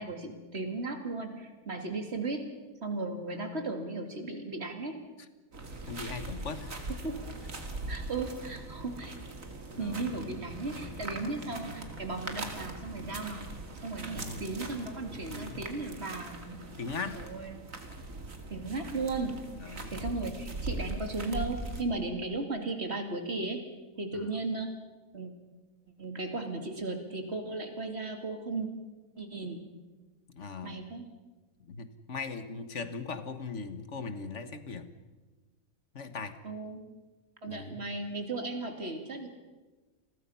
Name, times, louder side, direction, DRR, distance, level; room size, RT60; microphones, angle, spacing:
voice 1, 0.0-2.5 2.8-5.0 6.9-7.3 7.9-9.2 9.8-13.4 13.8-16.7 17.0-17.6 18.5-23.6 24.0-24.7 25.1-25.3 26.0-28.7 29.2-29.6 30.6-31.1 36.4-36.9 37.4-39.3, right 3 dB, 45° right, 5 dB, 2.8 m, -36 dB
sound 1, 5.5-21.8, right 2 dB, 65° right, 2.8 m, -41 dB
voice 2, 5.9-6.8 9.7-10.0 14.2-14.4 15.3-15.6 16.8-17.2 19.6-19.9 30.3-30.8 31.6-34.9 35.9-36.4 37.5-37.8, left 4 dB, 55° left, 10 dB, 1.7 m, -39 dB
29.5 x 21.5 x 5.7 m, 1.2 s
omnidirectional pair, 1.5 m